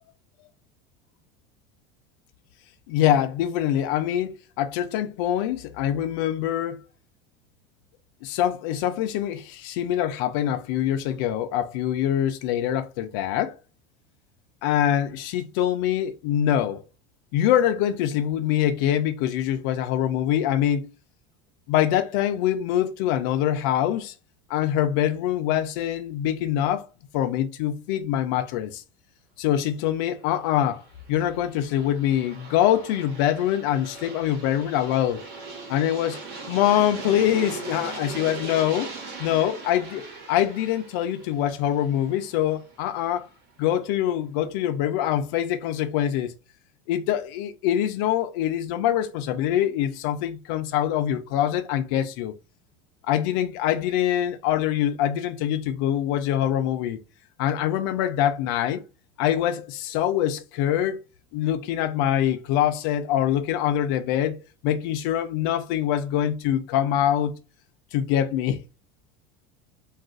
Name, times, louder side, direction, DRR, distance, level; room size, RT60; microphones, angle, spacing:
voice 1, 2.9-6.8 8.2-13.5 14.6-16.8 17.3-20.9 21.7-24.1 24.5-26.9 27.1-28.8 29.4-30.8 31.1-35.2 35.7-36.2 36.5-38.9 39.2-43.3 43.6-46.3 46.9-52.3 53.1-57.0 57.4-58.8 59.2-61.0 61.3-64.4 64.6-67.3 67.9-68.6, left 11 dB, 55° left, 0.4 m, -24 dB
Aircraft, 30.4-43.2, right 4 dB, 50° right, 1.1 m, -40 dB
2.4 x 2.3 x 3.7 m
cardioid pair, 175°, 14 cm